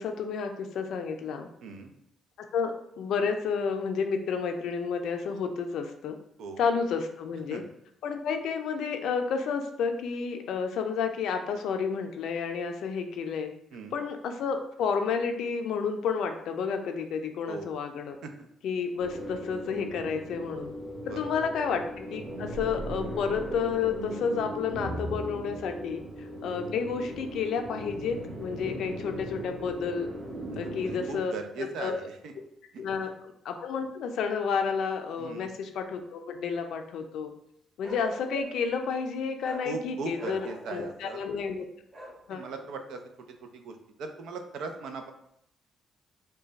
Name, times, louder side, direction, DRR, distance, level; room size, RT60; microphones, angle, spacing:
voice 1, 0.0-1.5 2.5-6.2 6.6-7.6 8.0-13.5 13.9-18.2 18.6-20.7 21.1-30.1 30.6-32.0 32.8-33.1 33.4-37.3 37.8-41.6 42.3-42.4, left 6 dB, 75° left, 6 dB, 0.4 m, -31 dB
voice 2, 1.6-1.9 6.4-6.6 7.5-7.6 13.7-14.0 17.5-17.7 18.2-18.5 21.1-21.2 30.5-32.3 32.7-33.1 35.2-35.5 39.6-41.2 42.3-43.0 43.4-45.1, right 4 dB, 80° right, 6 dB, 0.5 m, -39 dB
sound 1, 19.0-31.2, equal, 50° right, 1.1 m, -38 dB
Bark, 37.8-38.7 39.4-39.7 40.1-40.9 41.9-42.2, right 1 dB, 30° right, 1.4 m, -42 dB
3.2 x 2.2 x 3.9 m, 0.76 s
cardioid pair, 90°, 0 cm